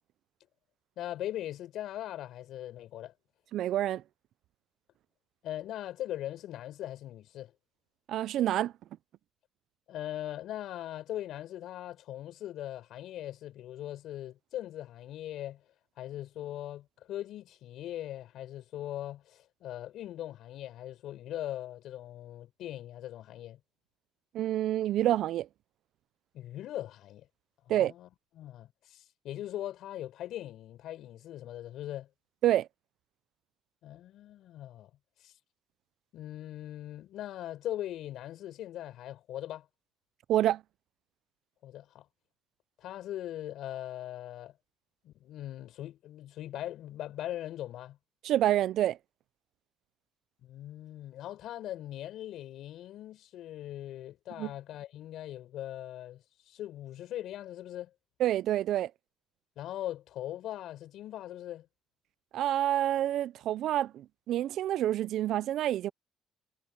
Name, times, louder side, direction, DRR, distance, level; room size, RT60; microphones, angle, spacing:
voice 1, 1.0-3.1 5.4-7.5 9.9-15.6 16.0-23.6 26.3-27.3 27.6-28.1 28.4-32.1 33.8-34.9 35.2-35.3 36.1-39.7 41.6-42.0 42.8-44.5 45.0-48.0 50.4-57.9 59.6-61.7, left 13 dB, 55° left, 6.4 m, -40 dB
voice 2, 3.5-4.0 8.1-8.7 24.3-25.5 27.7-27.9 32.4-32.7 40.3-40.6 48.2-49.0 54.4-54.5 58.2-58.9 62.3-65.9, right 12 dB, 55° right, 0.3 m, -28 dB
cardioid pair, 180°, 0 cm